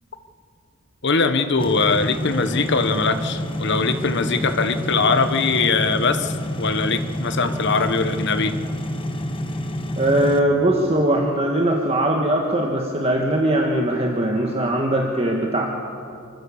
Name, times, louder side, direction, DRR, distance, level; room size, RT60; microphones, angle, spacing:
voice 1, 1.0-8.5, left 4 dB, 55° left, 9 dB, 1.1 m, -21 dB
sound 1, 1.6-10.4, equal, 25° left, 1.2 m, -28 dB
voice 2, 10.0-15.6, right 1 dB, 30° right, 0 dB, 1.5 m, -20 dB
26.0 x 14.5 x 7.2 m, 2.5 s
head